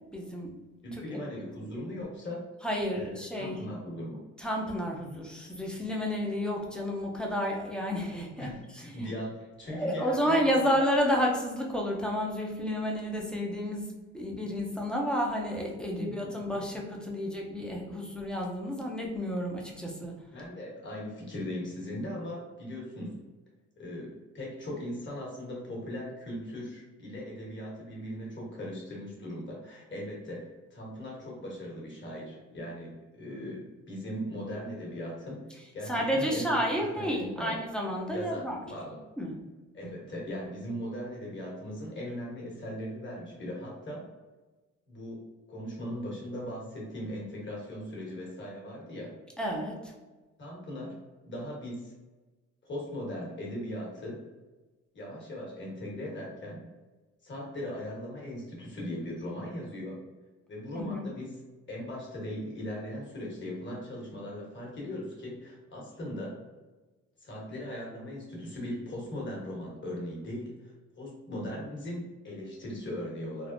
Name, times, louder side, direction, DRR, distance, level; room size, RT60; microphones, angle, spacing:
voice 1, 0.1-0.5 0.9-1.2 1.6-1.7 2.6-3.6 4.4-9.0 9.7-13.9 14.1-20.2 35.9-38.6 39.2-39.4 39.8-39.9 49.4-49.9 60.7-61.0, equal, 5° left, -1 dB, 0.6 m, -31 dB
voice 2, 0.8-2.4 2.9-4.2 8.4-10.7 16.0-16.4 20.3-23.1 23.8-35.4 35.7-37.6 38.1-38.4 38.7-39.0 39.7-44.0 44.9-45.2 45.5-49.2 50.4-50.9 51.2-51.9 52.6-54.2 54.9-56.6 57.2-60.0 60.5-61.3 61.7-66.3 67.2-73.5, left 1 dB, 40° left, -3 dB, 1.3 m, -39 dB
3.4 x 2.0 x 2.5 m, 1.2 s
cardioid pair, 90°, 30 cm